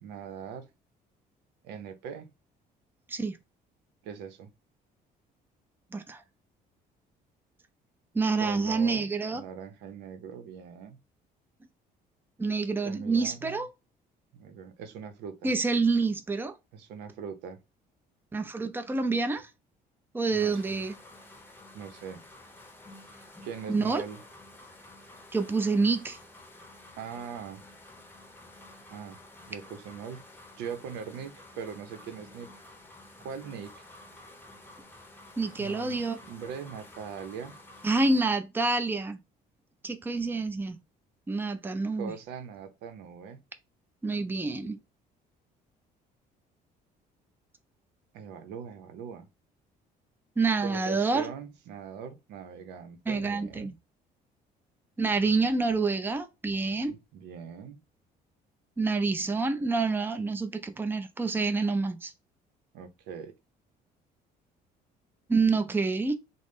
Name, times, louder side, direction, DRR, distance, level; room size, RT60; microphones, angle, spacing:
voice 1, 0.0-0.7 1.6-2.3 4.0-4.5 8.4-11.0 12.8-13.6 14.4-15.5 16.7-17.6 20.3-20.8 21.7-22.2 23.4-24.2 27.0-27.6 28.9-29.2 29.5-30.2 30.6-32.5 33.2-33.8 35.6-37.6 41.9-43.4 48.1-49.3 50.6-53.7 56.9-57.8 62.7-63.3, right 7 dB, 90° right, 0.7 m, -41 dB
voice 2, 8.1-9.4 12.4-13.7 15.4-16.5 18.3-19.5 20.1-20.9 23.7-24.0 25.3-26.2 35.4-36.2 37.8-39.2 39.8-40.8 41.3-42.1 44.0-44.8 50.4-51.3 53.1-53.7 55.0-56.9 58.8-62.1 65.3-66.1, right 3 dB, 10° right, 0.5 m, -27 dB
sound 1, 20.4-38.2, left 1 dB, 10° left, 0.8 m, -51 dB
3.8 x 2.1 x 3.5 m
cardioid pair, 110°, 17 cm